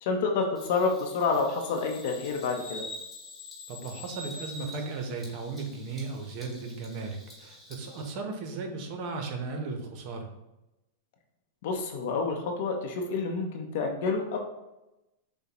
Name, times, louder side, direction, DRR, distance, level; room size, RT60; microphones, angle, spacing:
voice 1, 0.0-2.8 11.6-14.4, left 4 dB, 65° left, 2 dB, 0.7 m, -28 dB
Bird vocalization bird call bird song, 0.5-8.1, left 2 dB, 5° left, 1.4 m, -46 dB
voice 2, 3.7-10.3, right 4 dB, 50° right, 4 dB, 0.9 m, -36 dB
6.5 x 2.2 x 2.9 m, 0.95 s
hypercardioid pair, 125°, 0 cm